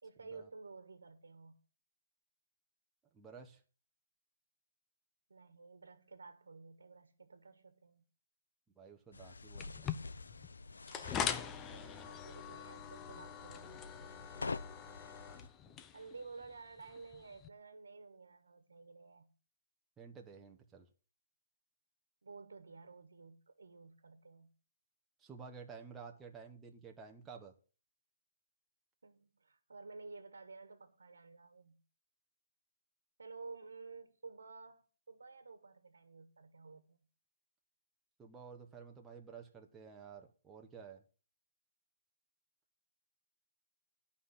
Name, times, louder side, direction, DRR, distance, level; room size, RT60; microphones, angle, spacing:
voice 1, 0.0-1.6 5.3-8.0 11.6-14.1 15.9-19.3 22.2-24.5 29.0-31.8 33.2-37.0, right 4 dB, 90° right, 1.5 m, -53 dB
voice 2, 3.1-3.6 8.7-9.9 11.5-12.1 15.6-15.9 20.0-20.9 25.2-27.5 38.2-41.0, right 5 dB, 10° right, 1.3 m, -53 dB
sound 1, 9.1-15.5, left 3 dB, 90° left, 0.6 m, -47 dB
sound 2, 9.6-17.5, left 8 dB, 15° left, 0.7 m, -43 dB
11.0 x 5.7 x 8.6 m
hypercardioid pair, 150°, 0 cm